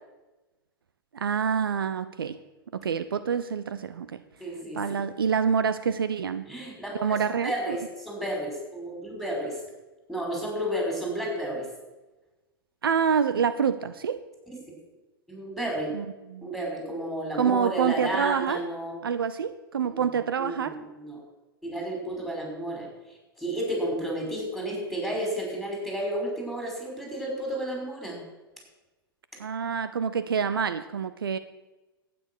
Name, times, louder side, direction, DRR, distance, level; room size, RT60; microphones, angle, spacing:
voice 1, 1.1-2.4 2.7-4.2 4.7-6.5 6.9-7.8 12.8-14.2 15.9-16.5 17.4-18.6 19.0-20.8 29.4-31.4, right 7 dB, 70° right, 13 dB, 0.6 m, -27 dB
voice 2, 4.4-5.0 6.5-9.5 10.1-11.7 15.3-15.9 16.4-19.0 19.8-20.0 20.4-21.2 21.6-22.9 23.4-28.2, right 1 dB, ahead, -1 dB, 5.2 m, -32 dB
11.5 x 9.4 x 6.2 m, 1.1 s
figure-of-eight pair, 95°, 12 cm